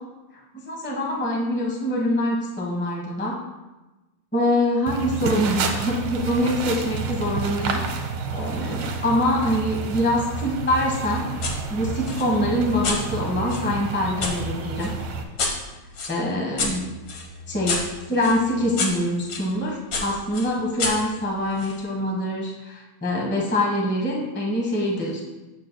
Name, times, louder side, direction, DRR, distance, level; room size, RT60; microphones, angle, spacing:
voice 1, 0.3-3.4 4.3-8.1 8.3-14.9 16.1-16.9 17.5-25.2, left 1 dB, 10° left, -2 dB, 0.7 m, -24 dB
sound 1, 4.9-15.2, right 4 dB, 80° right, 1.6 m, -30 dB
sound 2, 11.4-11.6 12.0-14.4 14.8-19.5 19.9-21.8, left 3 dB, 65° left, 1.8 m, -30 dB
8.1 x 7.6 x 2.2 m, 1.1 s
omnidirectional pair, 2.2 m